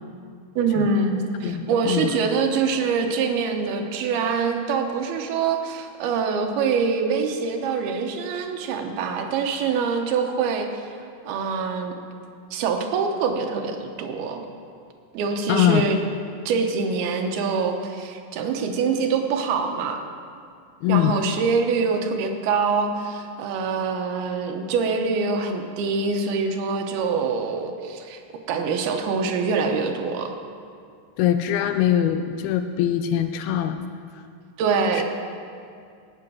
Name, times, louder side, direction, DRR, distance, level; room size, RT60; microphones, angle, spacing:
voice 1, 0.6-10.9 11.2-11.9 12.5-14.4 15.1-16.0 16.5-20.0 20.9-28.2 28.5-30.3 34.6-35.0, right 5 dB, 75° right, 4 dB, 2.7 m, -24 dB
voice 2, 1.4-2.1 15.5-15.8 20.8-21.2 31.2-33.9 34.9-35.0, left 10 dB, 80° left, 8 dB, 2.2 m, -22 dB
18.0 x 7.8 x 6.1 m, 2.3 s
omnidirectional pair, 4.8 m